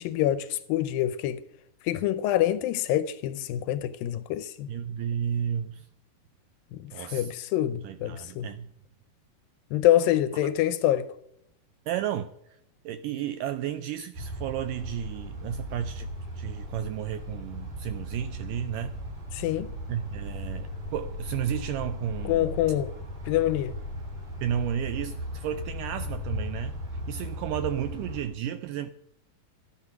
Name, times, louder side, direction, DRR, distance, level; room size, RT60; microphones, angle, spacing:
voice 1, 0.0-1.4 1.8-4.7 6.7-8.5 9.7-11.1 19.3-19.7 22.3-22.9 23.3-23.7, left 12 dB, 80° left, 2.2 m, -26 dB
voice 2, 4.7-5.9 6.9-7.3 7.8-8.7 10.4-10.5 11.9-12.6 12.9-16.1 16.4-19.0 19.9-22.6 24.4-28.9, right 9 dB, 85° right, 1.9 m, -33 dB
sound 1, 14.1-28.2, left 1 dB, 60° right, 6.1 m, -37 dB
12.5 x 11.0 x 5.8 m
omnidirectional pair, 4.3 m